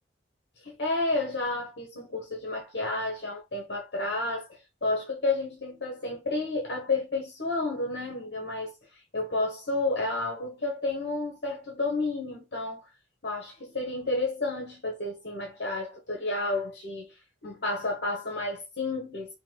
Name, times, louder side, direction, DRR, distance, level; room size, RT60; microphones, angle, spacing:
voice 1, 0.6-12.9 13.2-17.2 17.4-19.4, left 2 dB, 65° left, 1.2 m, -31 dB
5.7 x 2.4 x 3.7 m
head